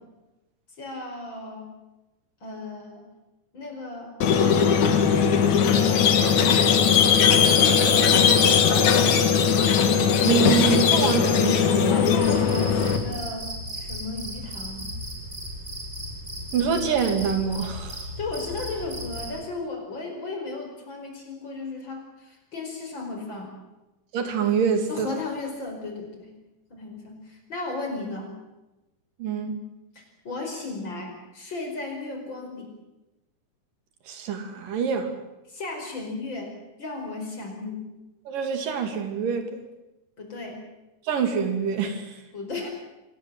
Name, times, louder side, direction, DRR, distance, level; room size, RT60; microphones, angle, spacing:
voice 1, 0.8-1.7 2.4-3.0 3.5-4.1 4.6-6.2 7.4-9.2 11.9-13.5 13.8-14.9 18.2-23.5 24.9-26.3 26.7-28.3 30.0-32.7 35.5-36.5 36.8-37.9 40.2-40.6 42.3-42.7, left 3 dB, 35° left, 2 dB, 5.6 m, -35 dB
Squeak, 4.2-13.0, left 7 dB, 65° left, 3.1 m, -19 dB
voice 2, 10.2-11.9 16.5-18.1 24.1-25.1 29.2-29.6 34.1-35.2 38.3-39.6 41.1-42.2, right 7 dB, 85° right, 7 dB, 4.1 m, -25 dB
Cricket, 12.2-19.4, equal, 20° right, 5.6 m, -36 dB
25.5 x 18.5 x 7.7 m, 1.0 s
omnidirectional pair, 3.8 m